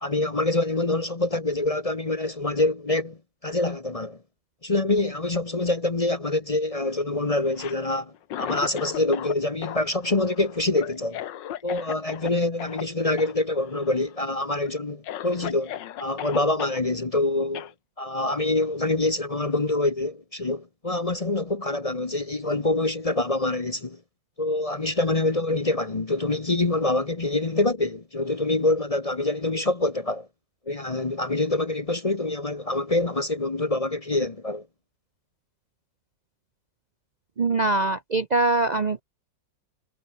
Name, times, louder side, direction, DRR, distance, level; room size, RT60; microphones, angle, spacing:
voice 1, 0.0-4.2 4.6-11.2 11.6-17.7 18.0-24.0 24.4-30.3 30.7-34.7, left 2 dB, 30° left, 0.7 m, -25 dB
Cough, 7.4-9.4 9.6-12.3 12.6-12.8 13.2-13.3 13.6-14.2 14.6-14.7 15.0-16.8 17.5-17.7, left 11 dB, 75° left, 1.6 m, -36 dB
voice 2, 37.4-39.0, right 2 dB, 85° right, 0.3 m, -23 dB
omnidirectional pair, 2.0 m